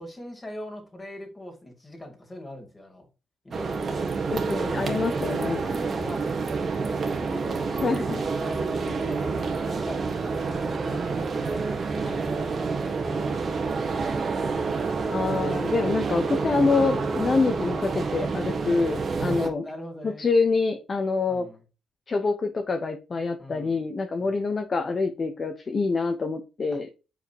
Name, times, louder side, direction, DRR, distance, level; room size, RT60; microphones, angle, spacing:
voice 1, 0.0-3.1 3.4-3.8 4.2-4.6 5.6-7.0 7.3-14.8 19.4-20.3 21.3-21.6 23.4-23.9 24.2-24.6 26.7-26.9, left 1 dB, 20° left, 2.5 m, -42 dB
sound 1, 3.5-19.5, right 4 dB, 45° right, 1.6 m, -28 dB
voice 2, 4.3-5.6 7.8-8.2 15.1-19.6 20.0-21.5 22.1-26.9, left 4 dB, 35° left, 0.9 m, -26 dB
7.5 x 5.0 x 2.9 m
cardioid pair, 100°, 0 cm